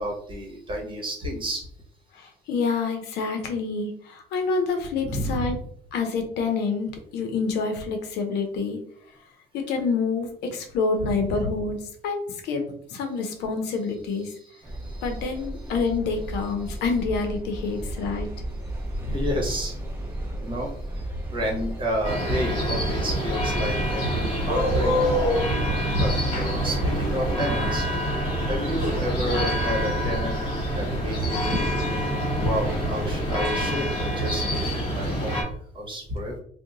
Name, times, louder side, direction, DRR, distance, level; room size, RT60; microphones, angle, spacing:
voice 1, 0.0-1.6 5.0-5.6 11.0-11.4 14.2-15.7 16.6-16.8 19.0-19.8 20.4-24.9 25.9-27.9 28.4-30.4 30.7-31.7 32.4-35.5 35.7-36.4, equal, 30° right, -1 dB, 1.2 m, -30 dB
voice 2, 2.2-5.6 5.9-8.8 9.5-11.8 12.0-12.6 12.9-14.3 15.0-18.3, left 4 dB, 80° left, 5 dB, 0.7 m, -27 dB
sound 1, 14.6-33.8, right 1 dB, 15° right, 0.6 m, -34 dB
sound 2, 22.0-35.4, equal, 30° left, 1.5 m, -26 dB
2.7 x 2.2 x 3.8 m, 0.62 s
cardioid pair, 110°, 17 cm